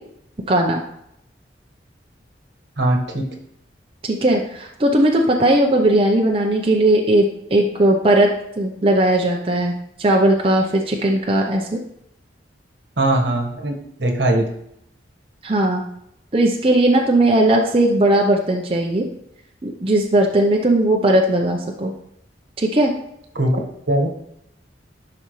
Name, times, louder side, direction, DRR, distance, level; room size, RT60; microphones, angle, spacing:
voice 1, 0.5-0.8 4.0-9.7 10.0-11.8 15.4-15.8 16.3-19.1 19.6-21.9 22.6-22.9, right 1 dB, 30° right, 0 dB, 0.7 m, -17 dB
voice 2, 13.0-13.7 14.0-14.4 23.3-23.6 23.9-24.1, right 1 dB, 70° right, 2 dB, 1.5 m, -19 dB
10.5 x 5.6 x 3.2 m, 0.77 s
head